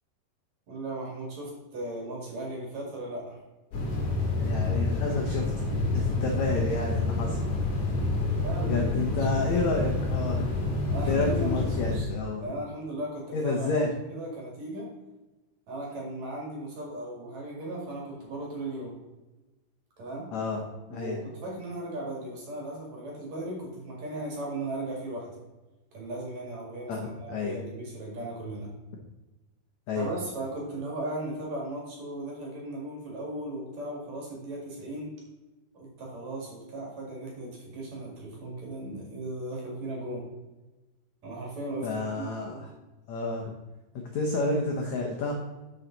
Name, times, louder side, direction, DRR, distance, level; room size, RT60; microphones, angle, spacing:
voice 1, 0.7-3.4 7.0-7.4 8.4-9.4 10.9-12.1 12.4-13.7 14.1-14.9 15.7-19.0 20.0-20.3 20.9-25.3 25.9-26.9 27.2-28.7 29.9-35.1 35.7-40.3 41.2-42.6, right 1 dB, 50° right, -2 dB, 3.1 m, -37 dB
sound 1, 3.7-12.0, left 2 dB, 55° left, 3.3 m, -28 dB
voice 2, 4.3-5.5 5.9-7.4 8.6-10.5 11.1-12.4 13.3-13.9 20.3-20.6 20.9-21.2 26.9-27.6 29.9-30.1 41.8-42.5 43.1-43.5 44.1-45.3, left 3 dB, 85° left, 1 dB, 1.6 m, -30 dB
12.5 x 5.7 x 4.0 m, 1.1 s
omnidirectional pair, 4.7 m